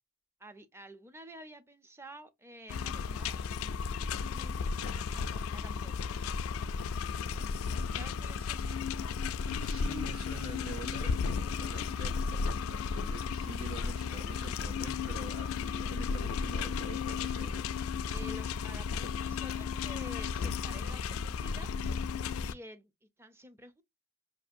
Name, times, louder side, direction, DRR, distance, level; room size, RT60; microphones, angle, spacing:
voice 1, 0.4-3.6 4.3-6.3 7.9-8.6 18.1-21.7 22.4-22.9 23.2-23.8, right 1 dB, 10° right, 0.5 m, -50 dB
sound 1, 2.7-22.5, left 5 dB, 85° left, 0.3 m, -34 dB
voice 2, 7.1-7.5 9.5-17.7, right 2 dB, 85° right, 1.4 m, -46 dB
5.1 x 2.6 x 2.4 m
head